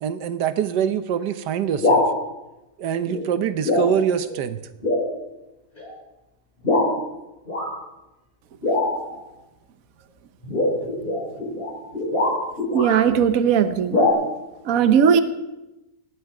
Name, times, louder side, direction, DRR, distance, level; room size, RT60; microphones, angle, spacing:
voice 1, 0.0-2.0 2.8-4.6, right 8 dB, 90° right, 11 dB, 1.5 m, -24 dB
sound 1, 1.7-2.1 3.0-3.3 3.6-3.9 4.3-4.4 4.8-5.1 5.8-5.9 6.6-6.9 7.5-7.7 8.6-9.1 10.4-13.0 13.9-14.1, left 2 dB, 30° left, 5.6 m, -22 dB
voice 2, 12.7-14.0 14.7-15.2, right 7 dB, 60° right, 11 dB, 1.2 m, -18 dB
18.5 x 13.0 x 4.9 m, 0.98 s
omnidirectional pair, 1.8 m